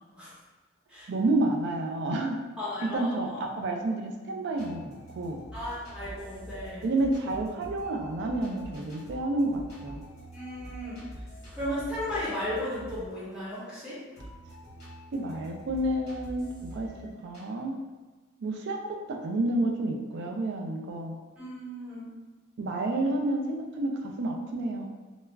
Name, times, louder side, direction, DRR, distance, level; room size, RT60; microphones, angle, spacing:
voice 1, 1.1-2.4 2.8-5.4 6.8-10.0 15.1-16.5 16.7-16.9 17.2-17.8 18.4-21.2 22.6-24.9, right 2 dB, 55° right, 2 dB, 0.4 m, -29 dB
voice 2, 2.6-3.4 5.5-6.9 10.3-11.0 11.5-14.0 21.4-22.1, left 1 dB, 5° right, -11 dB, 1.0 m, -35 dB
sound 1, 4.5-17.4, equal, 50° left, 0.9 m, -46 dB
2.3 x 2.0 x 3.2 m, 1.3 s
head